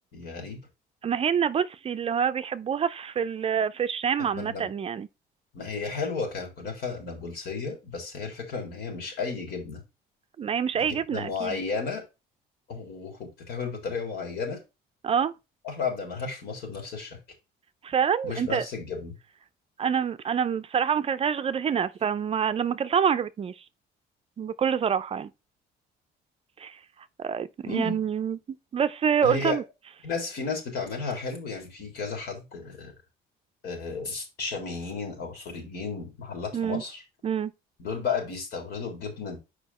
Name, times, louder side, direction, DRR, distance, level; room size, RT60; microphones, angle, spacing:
voice 1, 0.1-0.6 4.4-4.7 5.5-9.8 10.8-12.0 12.7-14.6 15.6-17.2 18.2-19.2 27.7-28.0 29.2-29.6 30.0-32.9 33.6-37.0 37.8-39.4, left 4 dB, 70° left, 3.5 m, -33 dB
voice 2, 1.0-5.1 10.4-11.6 15.0-15.3 17.8-18.7 19.8-23.5 24.4-25.3 26.6-26.8 27.2-28.4 28.7-29.6 36.5-36.8 37.2-37.5, right 7 dB, 35° right, 0.5 m, -26 dB
6.8 x 5.0 x 4.1 m
cardioid pair, 110°, 17 cm